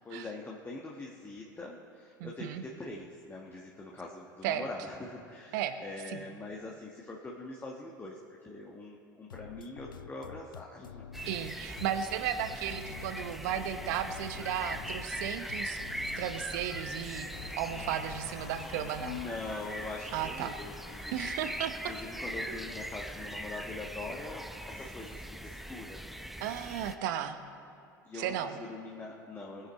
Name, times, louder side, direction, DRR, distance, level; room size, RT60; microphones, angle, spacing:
voice 1, 0.0-11.0 19.0-21.2 21.8-26.0 28.0-29.7, left 3 dB, 20° left, -2 dB, 1.5 m, -43 dB
voice 2, 2.2-2.6 4.4-4.7 5.5-5.8 6.1-6.3 11.3-15.8 16.2-19.2 20.1-20.5 21.1-21.7 22.5-22.6 26.4-27.4 28.1-28.6, right 10 dB, 65° right, 9 dB, 1.0 m, -35 dB
sound 1, 9.3-19.2, left 8 dB, 90° left, 0.4 m, -48 dB
sound 2, 11.1-27.0, equal, ahead, 0.9 m, -41 dB
Cheering / Applause / Crowd, 12.1-25.3, left 6 dB, 70° left, 1.2 m, -56 dB
21.5 x 9.5 x 4.2 m, 2.6 s
hypercardioid pair, 75°, 11 cm